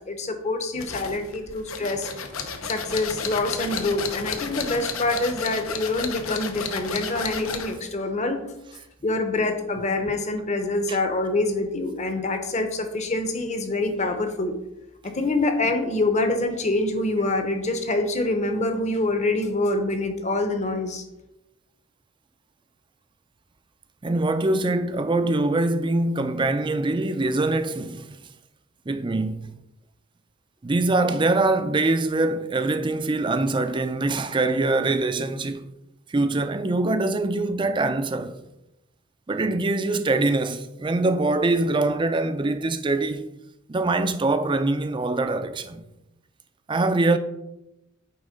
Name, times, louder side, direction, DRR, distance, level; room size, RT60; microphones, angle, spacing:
voice 1, 0.1-2.1 2.7-8.4 9.0-14.5 15.0-21.0, left 2 dB, 35° left, 0.9 m, -25 dB
sound 1, 0.8-7.8, left 5 dB, 80° left, 0.9 m, -32 dB
voice 2, 24.0-28.2 28.9-29.6 30.6-35.7 36.1-38.4 39.3-43.3 43.7-45.8 46.7-47.2, right 2 dB, 25° right, 0.4 m, -23 dB
8.8 x 3.6 x 5.1 m
head